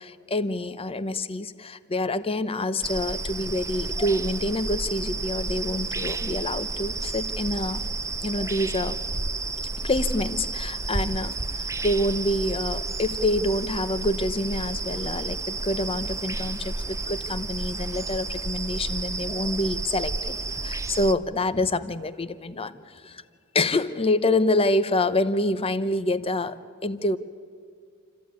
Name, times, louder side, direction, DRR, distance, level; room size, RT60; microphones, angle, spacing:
voice 1, 0.0-7.8 8.2-9.0 9.6-23.2 23.5-27.2, left 1 dB, 25° left, 14 dB, 0.8 m, -27 dB
sound 1, 2.8-21.1, right 3 dB, 15° right, 0.6 m, -31 dB
28.5 x 13.5 x 9.6 m, 2.2 s
head